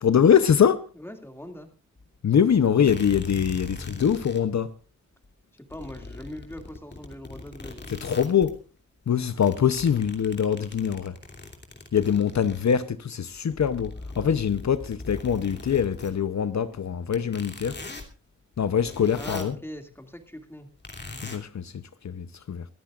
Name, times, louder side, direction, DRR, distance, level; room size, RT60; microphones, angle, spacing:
voice 1, 0.0-0.9 2.2-4.7 7.9-8.6 9.1-11.2 11.9-17.8 18.6-19.6 21.2-22.7, left 8 dB, 65° left, 0.8 m, -23 dB
voice 2, 1.0-1.7 5.7-7.9 19.1-20.7, left 1 dB, 10° left, 2.4 m, -41 dB
sound 1, 2.0-2.1 2.9-4.4 5.2-5.3 5.7-8.6 9.1-12.8 13.3-16.1 17.1-18.1 18.6-19.5 20.8-21.4, left 2 dB, 35° left, 2.9 m, -41 dB
24.0 x 14.5 x 2.5 m
wide cardioid pair, 135°, 30 cm